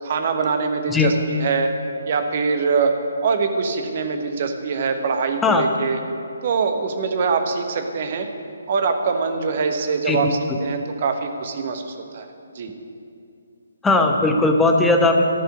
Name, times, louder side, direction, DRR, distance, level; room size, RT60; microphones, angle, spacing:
voice 1, 0.0-1.7 2.1-2.9 3.2-6.0 6.4-8.3 8.7-12.3 12.5-12.7, right 5 dB, 45° right, 6 dB, 1.2 m, -23 dB
voice 2, 10.1-10.6 13.8-15.2, left 2 dB, 5° left, 3 dB, 0.9 m, -18 dB
14.5 x 5.6 x 9.2 m, 2.6 s
figure-of-eight pair, 140°, 0 cm